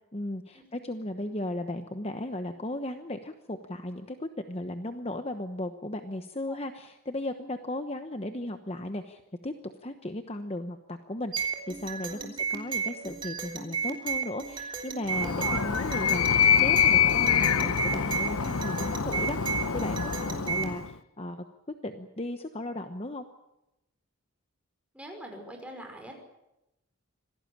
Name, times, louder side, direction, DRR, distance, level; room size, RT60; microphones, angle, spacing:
voice 1, 0.1-21.4 21.8-23.2, left 1 dB, 25° left, 7 dB, 1.0 m, -36 dB
sound 1, 11.3-20.8, right 6 dB, 20° right, 3.2 m, -33 dB
Animal, 15.1-20.9, left 8 dB, 75° left, 0.8 m, -25 dB
voice 2, 15.2-15.6 20.1-20.4 24.9-26.1, right 1 dB, 5° right, 2 dB, 5.4 m, -44 dB
26.0 x 18.0 x 8.7 m, 0.91 s
head